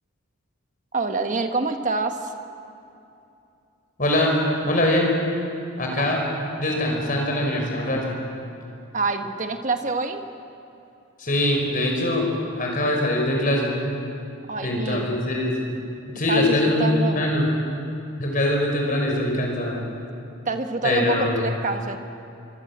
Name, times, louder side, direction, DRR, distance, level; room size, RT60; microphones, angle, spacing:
voice 1, 0.9-2.3 6.0-6.1 8.9-10.2 14.5-15.1 16.3-17.2 20.4-22.0, right 3 dB, 35° right, 6 dB, 1.5 m, -26 dB
voice 2, 4.0-4.4 4.6-5.1 5.8-6.3 6.6-8.2 11.2-12.3 12.6-13.8 14.6-15.6 16.1-16.9 17.2-17.5 18.2-19.8 20.8-21.3, left 1 dB, 40° left, 0 dB, 5.7 m, -22 dB
26.5 x 24.0 x 7.5 m, 2.7 s
head